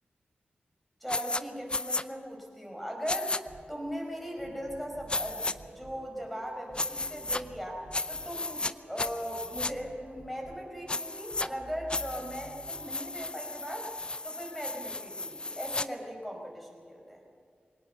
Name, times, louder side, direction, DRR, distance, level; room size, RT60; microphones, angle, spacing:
voice 1, 1.0-3.3 3.7-5.4 5.7-13.9 14.2-17.3, equal, ahead, 1 dB, 5.2 m, -39 dB
sound 1, 1.1-1.4 1.7-2.0 3.1-3.4 5.1-5.5 6.7-7.4 7.9-8.7 9.0-9.7 10.9-11.5 11.9-15.9, left 2 dB, 30° left, 0.6 m, -34 dB
sound 2, 3.5-13.5, right 2 dB, 45° right, 4.0 m, -52 dB
22.5 x 18.5 x 6.8 m, 2.3 s
wide cardioid pair, 100°, 4 cm